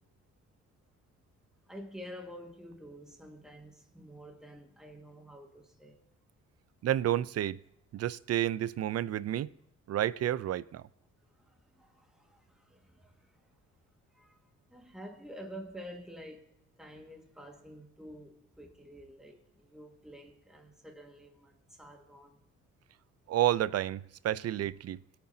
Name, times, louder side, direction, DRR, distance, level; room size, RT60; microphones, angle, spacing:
voice 1, 1.7-6.1 11.4-13.1 14.1-14.4 14.7-16.4 16.8-22.4, equal, ahead, 1.9 m, -49 dB
voice 2, 6.8-7.6 7.9-9.5 9.9-10.8 23.3-25.0, right 12 dB, 55° right, 0.5 m, -30 dB
22.5 x 8.9 x 2.8 m
cardioid pair, 90°, 30 cm